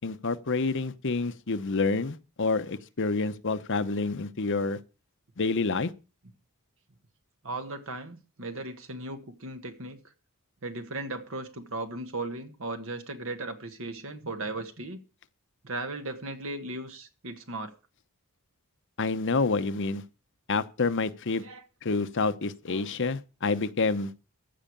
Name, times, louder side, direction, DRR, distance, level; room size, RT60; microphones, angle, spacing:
voice 1, 0.0-4.8 5.4-5.9 19.0-20.0 20.5-21.4 21.8-24.1, left 3 dB, 55° left, 0.9 m, -28 dB
voice 2, 7.4-10.0 10.6-15.0 15.6-17.7 21.4-21.7 22.7-22.9, right 2 dB, 60° right, 1.6 m, -37 dB
14.5 x 4.9 x 8.8 m
head